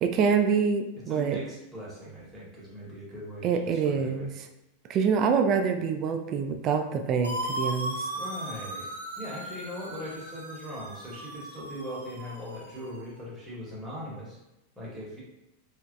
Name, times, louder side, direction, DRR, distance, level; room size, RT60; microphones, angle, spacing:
voice 1, 0.0-1.4 3.4-4.3 4.9-8.1, right 6 dB, 35° right, 6 dB, 0.3 m, -26 dB
voice 2, 1.1-4.3 8.1-8.9 9.2-14.4 14.8-15.2, equal, 5° right, -7 dB, 0.9 m, -40 dB
sound 1, 7.2-13.0, right 1 dB, 80° right, 0.6 m, -37 dB
2.9 x 2.4 x 2.4 m, 0.91 s
figure-of-eight pair, 90°, 0 cm